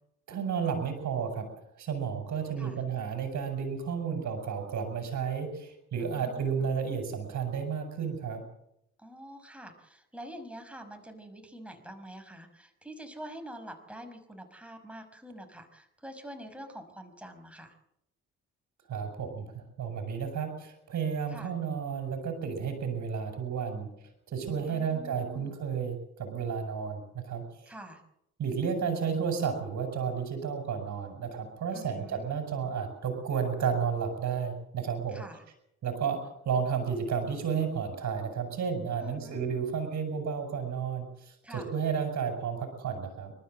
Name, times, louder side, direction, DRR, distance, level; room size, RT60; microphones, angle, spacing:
voice 1, 0.3-1.5 1.8-8.4 18.9-23.9 24.3-27.7 28.4-35.2 35.8-36.2 36.5-43.3, right 6 dB, 65° right, 5 dB, 5.6 m, -32 dB
voice 2, 6.0-6.7 9.0-17.7 21.3-21.5 24.7-25.5 27.7-28.0 31.7-32.3 35.1-35.4 39.0-39.4 41.4-41.7, equal, 5° right, 5 dB, 5.6 m, -46 dB
29.0 x 13.0 x 7.8 m, 0.80 s
cardioid pair, 90°, 30 cm